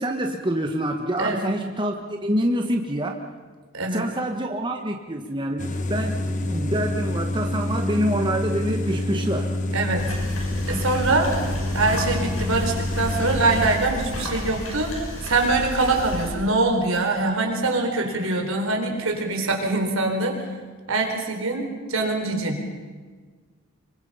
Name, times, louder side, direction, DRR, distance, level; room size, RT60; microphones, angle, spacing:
voice 1, 0.0-3.2 3.9-6.2 6.4-9.5, right 1 dB, 20° right, 2 dB, 1.4 m, -26 dB
voice 2, 3.7-4.0 9.7-10.0 10.7-11.3 11.7-14.9 15.2-20.4 20.9-22.6, right 2 dB, 75° right, 3 dB, 4.2 m, -23 dB
sound 1, 5.6-13.8, left 1 dB, 35° left, 1.4 m, -27 dB
sound 2, 10.0-16.3, equal, 80° left, 6.8 m, -32 dB
26.0 x 23.5 x 5.7 m, 1.4 s
head